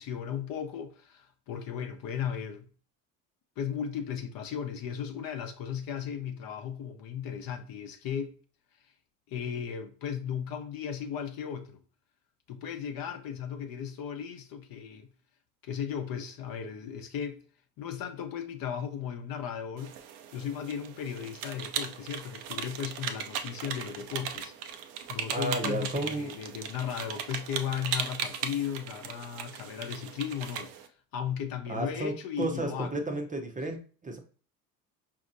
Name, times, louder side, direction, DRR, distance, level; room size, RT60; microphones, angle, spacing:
voice 1, 0.0-2.7 3.6-8.3 9.3-11.8 12.5-15.1 15.6-17.4 17.8-19.9 20.3-24.5 25.1-30.7 31.1-33.0, left 8 dB, 50° left, 0.8 m, -36 dB
sound 1, 19.8-30.9, right 8 dB, 70° right, 0.7 m, -38 dB
voice 2, 25.3-26.3 31.7-34.2, right 2 dB, 15° right, 0.7 m, -33 dB
5.0 x 2.8 x 2.6 m
hypercardioid pair, 70°, 46 cm